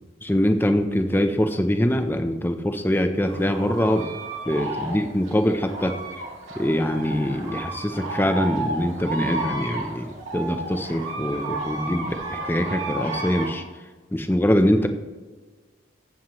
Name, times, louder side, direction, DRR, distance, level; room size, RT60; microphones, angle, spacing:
voice 1, 0.2-4.1 4.5-5.9 6.6-13.6 14.1-14.9, equal, 10° left, 6 dB, 0.6 m, -23 dB
sound 1, 3.2-13.5, right 2 dB, 70° right, 2.1 m, -32 dB
15.0 x 7.2 x 3.1 m, 1.3 s
head